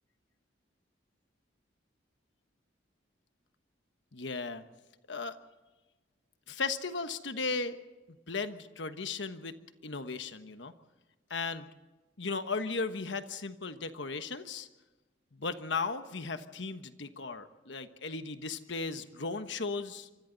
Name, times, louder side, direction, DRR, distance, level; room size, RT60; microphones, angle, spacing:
voice 1, 4.1-4.6 5.1-5.4 6.5-7.8 8.3-9.5 9.8-10.7 11.3-11.7 12.2-14.7 15.3-20.1, left 4 dB, 70° left, 9 dB, 1.2 m, -36 dB
26.0 x 25.0 x 4.1 m, 1.1 s
head